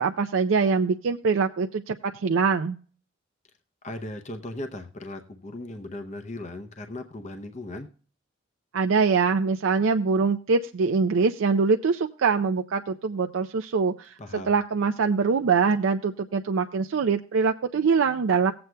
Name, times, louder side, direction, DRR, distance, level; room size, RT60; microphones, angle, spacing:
voice 1, 0.0-2.8 8.7-14.2 14.5-18.5, right 5 dB, 80° right, 5 dB, 0.4 m, -23 dB
voice 2, 3.8-7.9 14.2-14.5, left 2 dB, 35° left, 6 dB, 0.6 m, -37 dB
19.0 x 7.8 x 2.2 m, 0.43 s
head